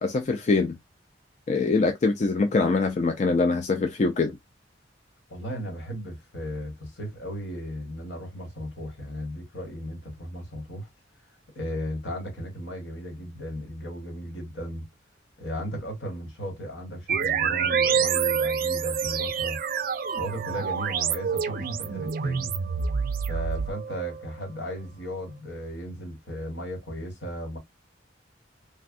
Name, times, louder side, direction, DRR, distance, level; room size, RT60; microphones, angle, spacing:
voice 1, 0.0-0.7 1.5-4.4, left 3 dB, 40° left, 0.3 m, -23 dB
voice 2, 5.3-10.9 11.5-14.9 15.4-19.6 20.2-22.5 23.3-27.6, equal, 70° left, 1.6 m, -35 dB
sound 1, 17.1-24.3, right 6 dB, 50° right, 0.4 m, -27 dB
3.3 x 2.2 x 2.4 m
head